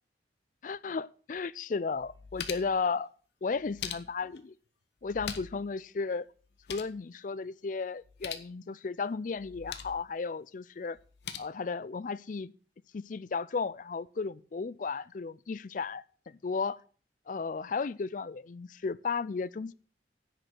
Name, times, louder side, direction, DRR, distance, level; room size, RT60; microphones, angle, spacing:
voice 1, 0.6-3.1 3.4-4.5 5.0-6.3 6.7-11.0 11.4-12.5 12.9-16.8 17.3-19.7, left 4 dB, 45° left, 0.4 m, -34 dB
sound 1, 1.4-1.5 1.9-2.8 3.5-4.4 5.0-5.7 5.9-6.0 6.4-7.0 8.0-8.5 9.4-10.0 10.9-11.4, left 8 dB, 65° left, 0.9 m, -42 dB
10.0 x 5.3 x 7.6 m
head